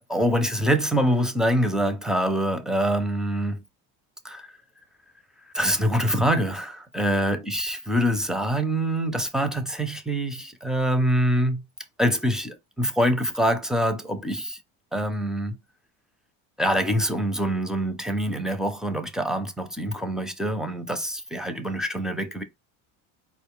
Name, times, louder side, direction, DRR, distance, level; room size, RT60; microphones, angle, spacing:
voice 1, 0.1-3.6 4.2-4.5 5.5-11.6 12.0-14.6 14.9-15.6 16.6-22.4, equal, ahead, 0.5 m, -25 dB
4.1 x 2.4 x 3.6 m
supercardioid pair, 115°, 39 cm